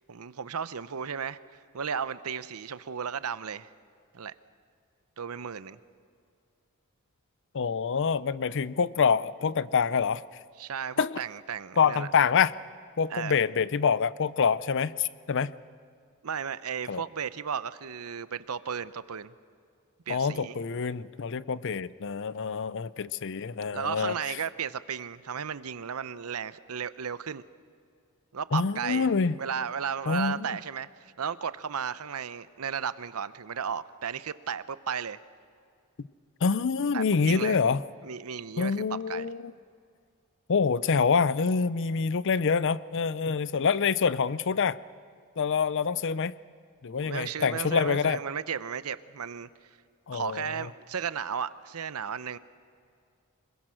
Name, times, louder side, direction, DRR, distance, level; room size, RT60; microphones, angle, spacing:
voice 1, 0.1-1.4 1.7-3.7 4.1-4.3 5.2-5.8 10.6-12.1 13.1-13.4 16.2-19.3 20.1-20.6 23.7-27.4 28.3-29.1 29.4-35.2 36.9-37.6 38.0-38.8 39.1-39.3 47.0-49.5 50.1-52.4, right 7 dB, 80° right, 15 dB, 0.7 m, -34 dB
voice 2, 7.5-10.2 11.0-11.2 11.8-12.5 13.0-15.5 16.9-17.0 20.1-24.1 28.5-29.3 30.1-30.5 36.4-37.8 38.6-39.5 40.5-44.8 45.4-46.3 46.8-48.2 50.1-50.7, left 5 dB, 55° left, 18 dB, 0.5 m, -26 dB
26.0 x 22.0 x 6.3 m, 2.3 s
head